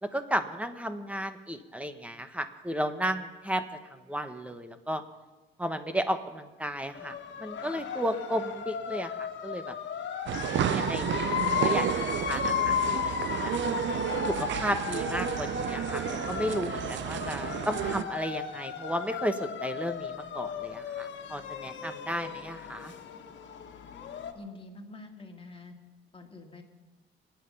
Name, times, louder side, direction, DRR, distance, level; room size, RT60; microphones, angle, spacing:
voice 1, 0.0-3.6 3.9-5.0 5.6-7.1 7.4-9.7 10.6-13.5 14.3-22.9, equal, 5° right, 8 dB, 1.4 m, -34 dB
sound 1, 6.9-24.3, left 8 dB, 65° left, 1.8 m, -35 dB
sound 2, 10.3-18.0, right 10 dB, 70° right, 0.8 m, -31 dB
voice 2, 24.3-25.7 26.1-26.6, left 2 dB, 30° left, 3 dB, 2.4 m, -46 dB
26.0 x 9.4 x 5.6 m, 1.2 s
cardioid pair, 90°, 20 cm